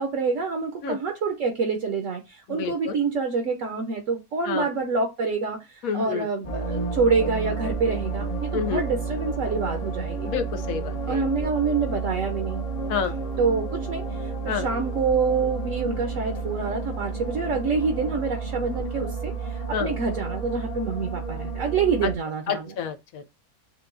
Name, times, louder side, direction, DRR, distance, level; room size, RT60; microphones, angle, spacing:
voice 1, 0.0-10.3 11.1-12.6 13.4-22.7, right 4 dB, 65° right, 1.0 m, -27 dB
voice 2, 2.5-3.0 4.5-4.7 5.8-6.3 8.5-8.8 10.2-11.2 12.9-13.1 14.5-14.6 19.7-19.9 22.5-23.3, left 7 dB, 70° left, 1.0 m, -29 dB
sound 1, 6.4-22.1, right 4 dB, 35° left, 0.6 m, -31 dB
6.7 x 2.2 x 2.5 m
omnidirectional pair, 1.6 m